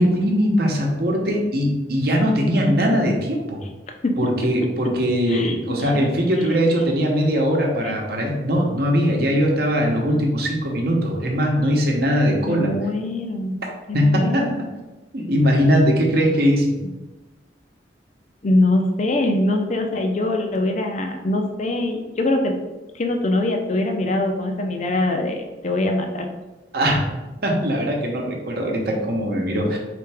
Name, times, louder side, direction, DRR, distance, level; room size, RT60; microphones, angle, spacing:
voice 1, 0.0-3.6 4.2-12.7 13.9-14.4 15.1-16.8 26.7-27.0 27.4-29.8, equal, 60° right, 0 dB, 0.9 m, -20 dB
voice 2, 5.3-5.9 7.8-7.9 12.4-13.6 13.9-14.6 18.4-22.6 22.9-26.3, left 2 dB, 40° left, 4 dB, 0.5 m, -23 dB
4.5 x 3.3 x 3.4 m, 1.1 s
head